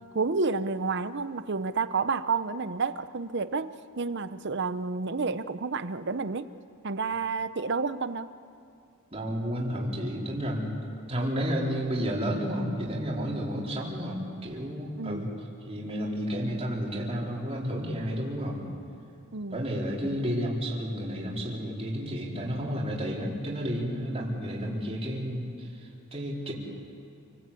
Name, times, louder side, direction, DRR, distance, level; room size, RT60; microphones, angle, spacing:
voice 1, 0.1-6.5 6.8-8.3 15.0-15.4 19.3-19.6, right 4 dB, 50° right, 13 dB, 0.8 m, -30 dB
voice 2, 9.1-10.7 11.1-15.3 15.7-18.6 19.5-26.5, equal, 25° right, -3 dB, 4.2 m, -31 dB
29.0 x 20.0 x 8.5 m, 2.5 s
head